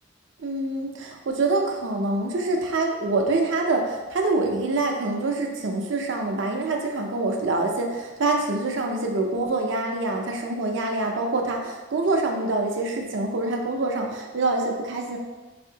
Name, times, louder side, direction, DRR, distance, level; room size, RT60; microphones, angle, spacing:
voice 1, 0.4-15.2, right 2 dB, 70° right, 2 dB, 0.5 m, -25 dB
4.1 x 2.6 x 2.8 m, 1.2 s
head